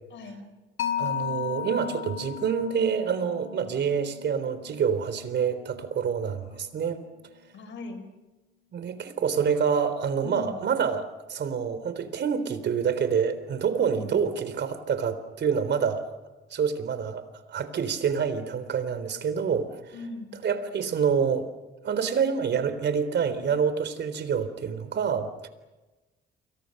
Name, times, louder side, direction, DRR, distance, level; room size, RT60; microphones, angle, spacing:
voice 1, 0.1-0.4 7.5-8.0 10.2-10.5 13.9-14.1 19.9-20.3, left 3 dB, 70° left, 7 dB, 6.8 m, -39 dB
Mallet percussion, 0.8-7.9, left 9 dB, 85° left, 2.6 m, -37 dB
voice 2, 1.0-7.0 8.7-16.1 16.5-19.9 20.4-21.5 21.8-25.5, right 6 dB, 60° right, 11 dB, 3.8 m, -27 dB
29.5 x 24.5 x 6.7 m, 1.1 s
cardioid pair, 90°, 20 cm